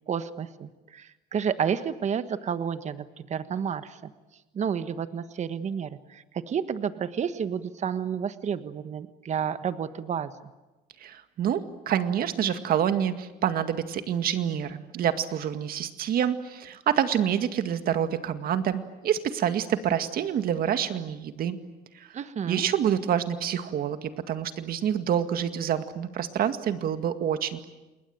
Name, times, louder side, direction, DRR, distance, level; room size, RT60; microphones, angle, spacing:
voice 1, 0.1-4.1 4.5-10.3 22.1-22.7, right 7 dB, 45° right, 11 dB, 1.4 m, -31 dB
voice 2, 11.0-21.6 22.5-27.6, right 9 dB, 60° right, 9 dB, 2.1 m, -27 dB
29.0 x 21.0 x 9.0 m, 1.1 s
cardioid pair, 110°, 17 cm